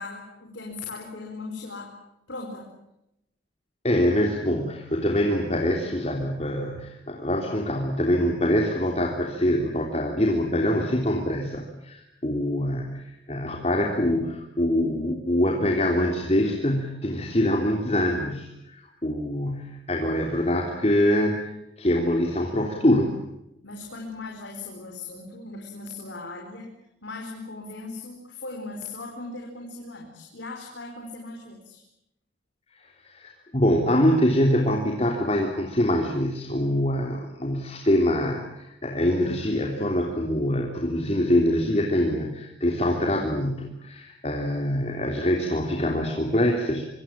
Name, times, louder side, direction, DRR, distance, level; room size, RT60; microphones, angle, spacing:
voice 1, 0.0-1.9 2.3-2.7 23.6-26.8 27.0-31.8, left 3 dB, 90° left, 1 dB, 4.9 m, -38 dB
voice 2, 3.8-21.5 21.8-23.2 33.0-46.8, left 1 dB, 35° left, 1 dB, 3.3 m, -24 dB
26.0 x 25.0 x 7.4 m, 0.84 s
head